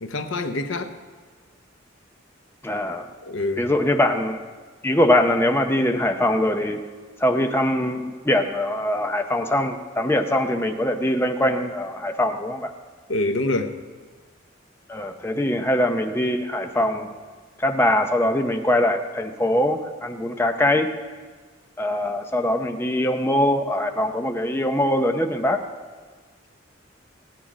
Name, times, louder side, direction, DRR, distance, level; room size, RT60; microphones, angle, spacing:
voice 1, 0.0-0.9 3.3-3.7 13.1-13.8 15.3-15.4, left 2 dB, 85° left, 7 dB, 0.9 m, -26 dB
voice 2, 2.6-3.1 3.6-4.4 4.8-6.8 7.2-12.7 14.9-17.1 17.6-20.9 21.8-25.6, left 1 dB, 10° left, 4 dB, 0.6 m, -22 dB
16.5 x 9.6 x 5.0 m, 1.5 s
head